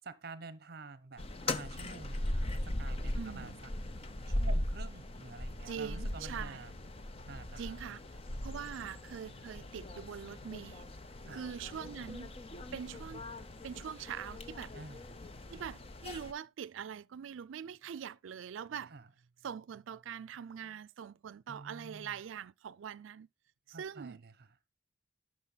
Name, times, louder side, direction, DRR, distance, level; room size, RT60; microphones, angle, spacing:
voice 1, 0.1-3.5 4.3-6.7 7.2-7.8 11.2-11.4 14.7-15.0 18.9-19.1 21.5-22.1 23.7-24.5, right 3 dB, 55° right, 0.8 m, -49 dB
sound 1, 1.2-16.3, left 1 dB, 30° left, 0.6 m, -39 dB
voice 2, 3.1-3.6 5.7-6.6 7.6-8.0 8.4-10.9 11.3-12.4 12.7-13.2 13.6-14.7 15.5-18.9 19.4-23.3 23.7-24.2, right 8 dB, 90° right, 0.4 m, -43 dB
11.5 x 6.3 x 4.0 m
head